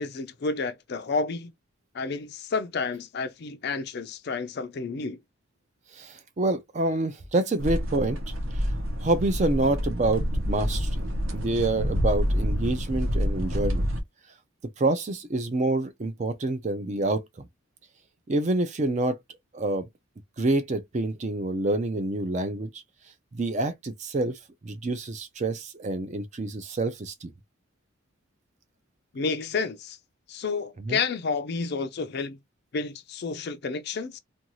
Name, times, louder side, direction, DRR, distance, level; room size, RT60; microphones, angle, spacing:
voice 1, 0.0-1.5 1.9-5.2 29.1-30.0 30.3-32.4 32.7-34.2, left 4 dB, 50° left, 0.4 m, -30 dB
voice 2, 5.9-8.2 8.5-8.7 9.0-11.0 11.3-13.9 14.8-17.5 18.3-19.2 19.5-19.9 20.4-22.8 23.3-27.3 30.8-31.0, right 2 dB, 35° right, 0.4 m, -27 dB
sound 1, 7.6-14.0, equal, 70° right, 0.8 m, -27 dB
2.5 x 2.3 x 2.9 m
head